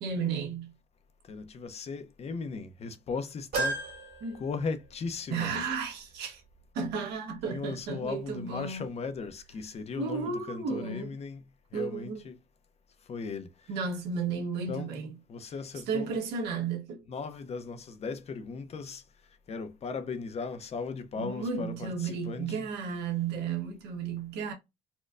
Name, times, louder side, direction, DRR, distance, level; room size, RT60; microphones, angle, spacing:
voice 1, 0.0-0.7 4.2-4.4 5.3-6.4 6.7-8.9 10.0-11.1 11.7-12.2 13.7-15.1 15.9-17.0 21.2-24.5, right 5 dB, 85° right, 1.2 m, -33 dB
voice 2, 1.3-3.8 4.3-5.6 7.5-11.4 11.7-12.4 13.1-13.7 14.7-14.9 15.3-16.2 17.1-19.0 19.5-22.7, left 4 dB, 40° left, 0.6 m, -37 dB
sound 1, 3.5-5.2 5.6-5.7 6.9-7.0, right 3 dB, 65° right, 1.8 m, -35 dB
4.3 x 2.2 x 2.4 m
cardioid pair, 110°, 17 cm